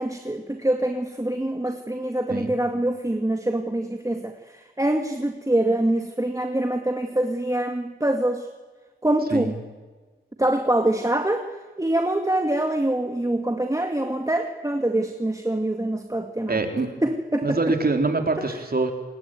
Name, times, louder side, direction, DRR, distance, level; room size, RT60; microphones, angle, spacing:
voice 1, 0.0-8.5 9.0-9.5 10.4-11.5 11.8-16.6 17.0-17.6 18.4-18.5, right 1 dB, 15° right, 5 dB, 2.1 m, -25 dB
voice 2, 16.5-16.9 17.4-18.9, right 3 dB, 50° right, 5 dB, 4.1 m, -24 dB
28.0 x 20.5 x 9.2 m, 1.4 s
wide cardioid pair, 60°, 20 cm